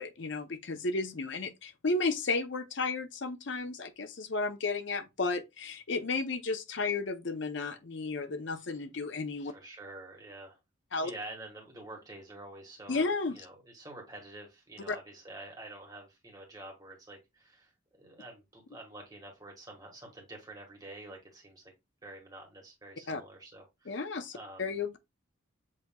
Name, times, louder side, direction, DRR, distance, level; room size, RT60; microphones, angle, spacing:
voice 1, 0.0-9.5 10.9-11.1 12.9-13.4 14.9-15.0 23.1-23.2 23.9-25.0, left 3 dB, 60° left, 0.6 m, -33 dB
voice 2, 9.4-10.6 11.0-17.7 18.0-21.6 22.0-24.0 24.3-24.7, right 2 dB, 20° right, 1.5 m, -48 dB
7.5 x 2.9 x 2.3 m
head